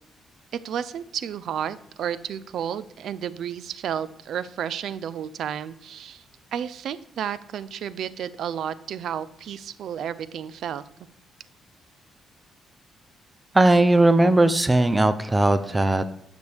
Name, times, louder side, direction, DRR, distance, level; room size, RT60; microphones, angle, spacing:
voice 1, 0.5-6.2 6.5-10.8, right 9 dB, 70° right, 16 dB, 0.4 m, -32 dB
voice 2, 13.5-16.0, right 2 dB, 15° right, 12 dB, 0.5 m, -18 dB
9.5 x 6.1 x 3.4 m, 0.81 s
cardioid pair, 90°, 0 cm